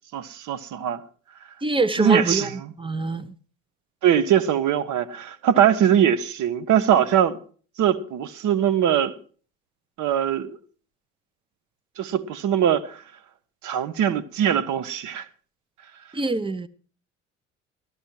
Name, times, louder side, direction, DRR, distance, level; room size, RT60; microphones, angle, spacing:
voice 1, 0.1-1.0 2.0-2.5 4.0-7.4 7.8-9.1 10.0-10.6 12.0-13.0 13.6-15.2, right 9 dB, 50° right, 1.2 m, -21 dB
voice 2, 1.6-2.5 2.8-3.3 16.1-16.7, right 3 dB, 15° right, 1.0 m, -24 dB
14.0 x 13.0 x 4.6 m
figure-of-eight pair, 60°, 38 cm